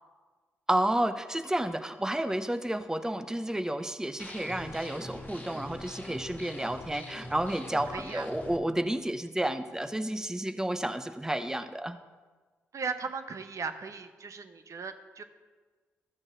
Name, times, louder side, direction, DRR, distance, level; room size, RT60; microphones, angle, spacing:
voice 1, 0.7-12.0, right 1 dB, 10° right, 10 dB, 0.7 m, -31 dB
sound 1, 4.2-8.6, left 1 dB, 25° left, 1.9 m, -43 dB
voice 2, 7.9-8.3 12.7-15.2, right 5 dB, 55° right, 8 dB, 0.9 m, -37 dB
13.0 x 6.5 x 6.1 m, 1.4 s
supercardioid pair, 45°, 6 cm